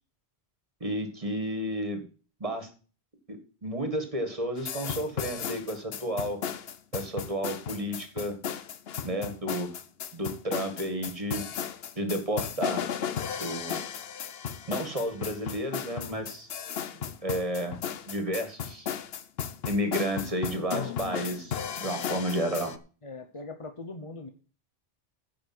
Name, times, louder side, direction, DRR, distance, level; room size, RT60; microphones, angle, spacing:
voice 1, 0.8-2.0 2.4-2.7 3.3-6.4 6.9-8.4 9.0-9.7 10.1-11.5 12.0-12.8 13.4-13.8 14.7-16.5 16.9-17.8 18.1-18.9 19.7-22.8, equal, 35° right, 7 dB, 1.9 m, -32 dB
sound 1, 4.6-22.8, left 8 dB, 75° left, 1.0 m, -35 dB
voice 2, 23.0-24.3, left 3 dB, 35° left, 6 dB, 0.9 m, -41 dB
10.0 x 5.1 x 7.8 m, 0.37 s
omnidirectional pair, 1.0 m